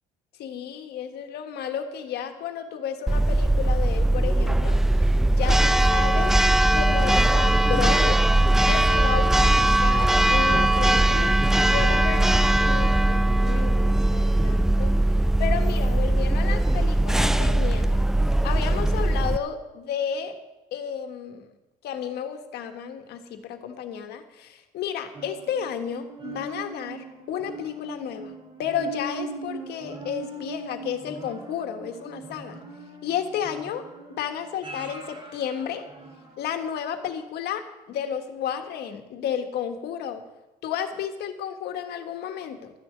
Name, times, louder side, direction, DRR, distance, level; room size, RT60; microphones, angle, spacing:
voice 1, 0.4-6.4 6.7-8.2 8.7-14.9 15.4-18.0 18.4-20.4 20.7-21.5 21.8-32.6 33.0-35.9 36.4-40.2 40.6-42.7, left 8 dB, 75° left, 6 dB, 1.6 m, -32 dB
Church bell, 3.1-19.4, right 1 dB, 5° right, 0.3 m, -20 dB
sound 1, 25.1-36.6 37.0-37.1, right 2 dB, 30° right, 3.1 m, -40 dB
13.0 x 6.5 x 9.6 m, 1.0 s
cardioid pair, 110°, 17 cm